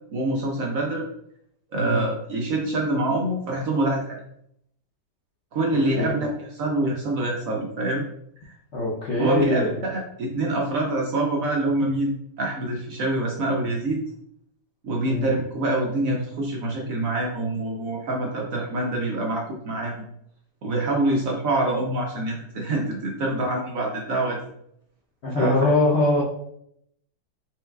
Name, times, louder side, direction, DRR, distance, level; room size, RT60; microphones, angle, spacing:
voice 1, 0.1-1.1 1.7-4.2 5.5-8.1 8.4-8.5 9.2-14.0 14.8-20.1 20.6-24.5 25.3-25.5, right 2 dB, 65° right, -1 dB, 0.9 m, -25 dB
voice 2, 5.7-6.1 8.7-9.8 15.0-15.3 25.2-26.2, left 2 dB, 65° left, -5 dB, 0.6 m, -23 dB
4.5 x 3.6 x 2.2 m, 0.73 s
omnidirectional pair, 1.9 m